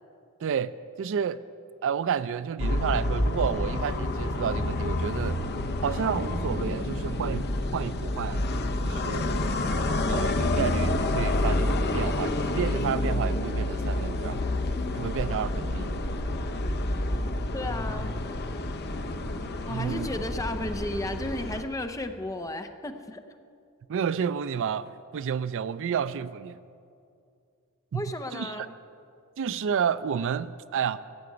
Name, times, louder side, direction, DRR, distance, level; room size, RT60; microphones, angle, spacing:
voice 1, 0.4-1.4 1.8-5.4 5.8-7.5 7.7-8.5 8.8-9.4 10.1-14.4 15.0-16.0 19.7-20.1 23.9-26.6 27.9-28.0 28.3-28.7 29.4-31.0, right 7 dB, 60° right, 0.4 m, -30 dB
sound 1, 2.6-21.6, left 1 dB, 50° left, 0.8 m, -28 dB
voice 2, 17.5-18.1 19.6-23.2 27.9-28.7, left 1 dB, 15° left, 0.7 m, -34 dB
16.0 x 6.9 x 9.3 m
head